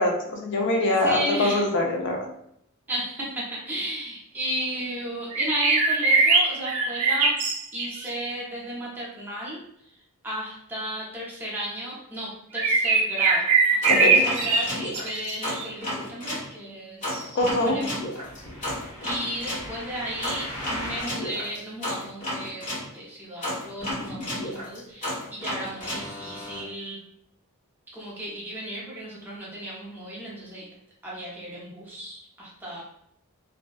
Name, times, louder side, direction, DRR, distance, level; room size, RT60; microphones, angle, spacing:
voice 1, 0.0-2.3 13.9-14.3 17.3-17.9, left 2 dB, 55° left, 1 dB, 0.4 m, -24 dB
voice 2, 0.9-1.6 2.9-7.4 7.7-9.6 10.2-18.0 19.0-22.7 22.9-27.0 27.9-30.7 31.0-32.8, equal, 10° right, -6 dB, 0.6 m, -34 dB
sound 1, 5.3-8.1 12.5-15.6, right 4 dB, 90° right, 0.5 m, -21 dB
sound 2, 13.8-16.5 17.0-22.9 23.4-26.6, left 1 dB, 35° left, 1.0 m, -32 dB
2.6 x 2.1 x 2.2 m, 0.73 s
head